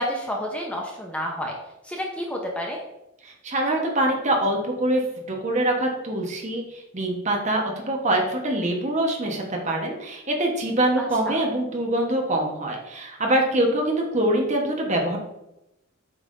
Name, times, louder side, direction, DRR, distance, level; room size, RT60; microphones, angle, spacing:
voice 1, 0.0-1.5 1.8-2.8 11.0-11.4, equal, 5° left, -1 dB, 0.8 m, -30 dB
voice 2, 3.2-5.0 5.3-15.2, right 1 dB, 35° right, 1 dB, 1.1 m, -24 dB
8.0 x 5.5 x 2.6 m, 0.90 s
head